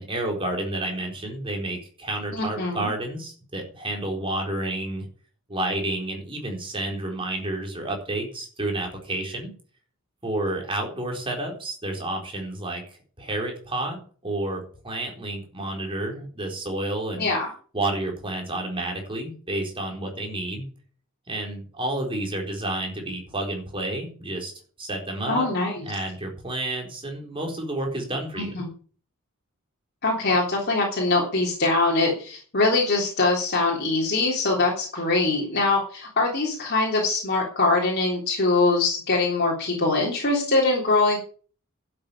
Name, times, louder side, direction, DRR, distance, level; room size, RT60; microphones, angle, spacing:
voice 1, 0.0-5.0 5.5-9.5 10.2-12.8 13.2-17.3 17.7-20.6 21.3-24.5 24.8-25.5 25.9-28.5, right 1 dB, 25° right, 1 dB, 4.2 m, -30 dB
voice 2, 2.3-2.9 17.2-17.5 25.3-25.8 28.4-28.7 30.0-41.2, left 3 dB, 45° left, -2 dB, 3.4 m, -23 dB
11.5 x 7.7 x 8.6 m, 0.42 s
head